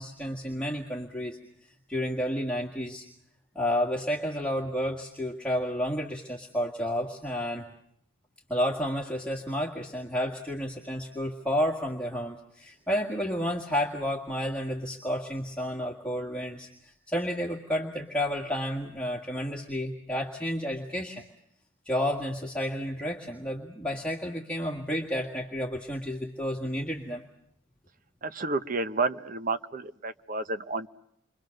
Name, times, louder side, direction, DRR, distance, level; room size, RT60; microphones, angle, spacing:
voice 1, 0.0-3.0 3.6-7.6 8.5-21.2 21.9-27.2, equal, 5° left, -2 dB, 1.9 m, -31 dB
voice 2, 28.2-30.9, right 3 dB, 40° right, 10 dB, 0.9 m, -30 dB
29.0 x 24.0 x 6.5 m, 0.74 s
head